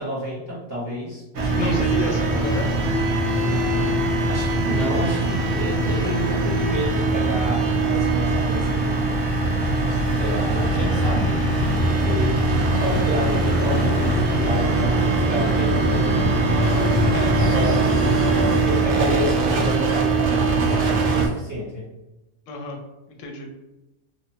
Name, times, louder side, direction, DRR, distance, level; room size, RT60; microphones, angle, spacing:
voice 1, 0.0-2.4 3.4-3.9 4.3-9.1 10.2-12.4 12.8-16.1 17.4-18.3 18.6-21.9, equal, 20° right, -10 dB, 0.8 m, -30 dB
sound 1, 1.3-21.3, right 3 dB, 75° right, 0.9 m, -22 dB
voice 2, 1.6-2.7 16.6-17.6 22.5-22.8 23.1-23.5, left 3 dB, 80° left, 3 dB, 0.9 m, -31 dB
sound 2, 9.1-18.6, left 1 dB, 55° right, 0.8 m, -25 dB
2.8 x 2.1 x 2.7 m, 0.97 s
omnidirectional pair, 1.3 m